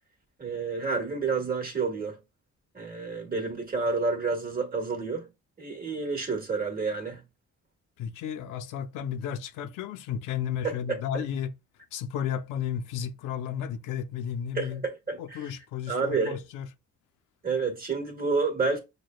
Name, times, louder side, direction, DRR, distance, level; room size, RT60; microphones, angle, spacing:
voice 1, 0.4-2.2 2.7-5.2 5.6-7.2 10.6-11.2 14.5-15.5 15.9-16.4 17.4-18.8, right 4 dB, 30° right, 1.4 m, -29 dB
voice 2, 8.0-11.5 11.9-14.8 15.2-16.7, left 8 dB, 90° left, 0.6 m, -33 dB
6.4 x 2.2 x 2.2 m
cardioid pair, 90°, 30 cm